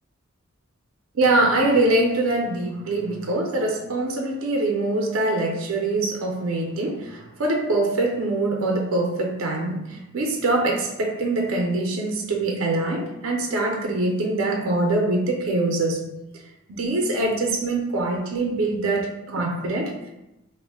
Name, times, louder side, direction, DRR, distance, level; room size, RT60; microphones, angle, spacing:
voice 1, 1.1-16.0 16.7-20.1, right 2 dB, 70° right, 1 dB, 0.5 m, -24 dB
2.4 x 2.1 x 3.4 m, 0.93 s
head